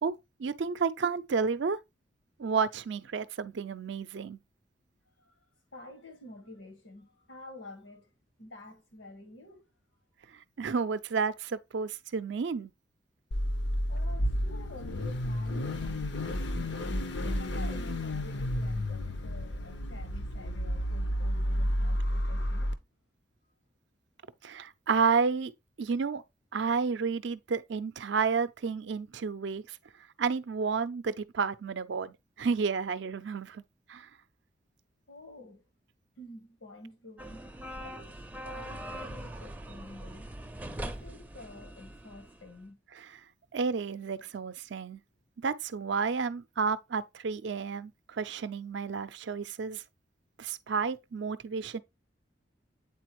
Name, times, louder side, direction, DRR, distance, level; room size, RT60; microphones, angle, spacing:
voice 1, 0.0-1.8 2.4-4.4 10.6-12.7 24.4-25.5 25.8-26.2 26.5-29.8 30.2-33.6 33.9-34.1 43.0-43.1 43.5-45.0 45.4-49.8 50.4-51.8, right 5 dB, 70° right, 0.5 m, -31 dB
voice 2, 5.7-8.1 8.4-9.7 13.9-22.7 35.1-35.6 36.2-38.2 38.4-40.3 40.8-42.8, left 2 dB, 90° left, 2.0 m, -49 dB
Car / Idling / Accelerating revving vroom, 13.3-22.7, equal, 65° left, 0.6 m, -31 dB
sound 1, 37.2-42.6, right 1 dB, 10° right, 0.5 m, -42 dB
8.2 x 4.2 x 3.0 m
head